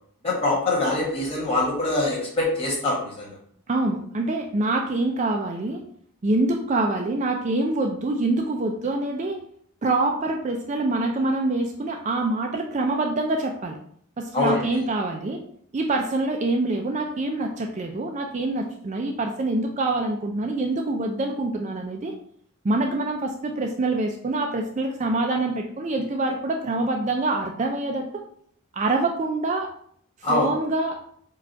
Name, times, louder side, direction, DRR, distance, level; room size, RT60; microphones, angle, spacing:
voice 1, 0.2-3.4 14.3-14.8 30.2-30.5, left 2 dB, 25° left, -4 dB, 1.6 m, -24 dB
voice 2, 3.7-5.8 6.2-9.4 9.8-13.8 14.2-15.4 15.7-22.1 22.6-28.1 28.7-29.7 30.3-31.0, right 2 dB, 30° right, 2 dB, 0.3 m, -25 dB
4.8 x 2.4 x 4.5 m, 0.62 s
head